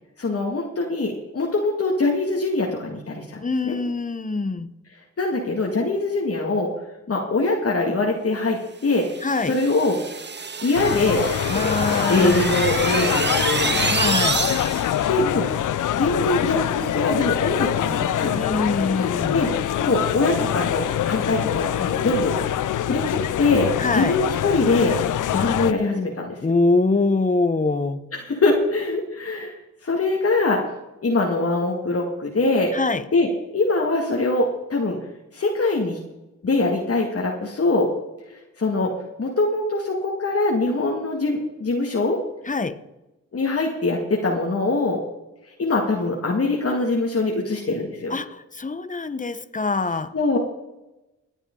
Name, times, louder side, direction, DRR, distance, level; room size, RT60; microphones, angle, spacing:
voice 1, 0.2-3.8 5.2-6.7 7.1-9.1 9.5-10.0 10.6-11.7 12.1-13.9 15.1-15.5 16.0-18.3 19.3-19.5 19.8-22.4 22.9-25.0 25.3-26.4 28.1-29.5 29.8-30.6 31.0-32.8 33.1-35.0 35.3-36.0 36.4-37.9 38.6-38.9 39.2-42.2 43.3-45.0 45.6-48.2 50.1-50.4, left 2 dB, 50° left, -1 dB, 2.1 m, -23 dB
voice 2, 3.4-4.7 9.2-9.6 11.5-12.5 13.9-14.4 18.3-19.4 23.8-24.2 26.4-28.0 32.7-33.0 42.4-42.8 48.1-50.1, left 3 dB, 25° left, 11 dB, 1.1 m, -24 dB
sound 1, 9.0-15.0, right 5 dB, 35° right, 0.9 m, -27 dB
sound 2, 10.7-25.7, left 11 dB, 80° left, 0.6 m, -24 dB
24.5 x 8.2 x 3.9 m, 0.98 s
cardioid pair, 55°, 30 cm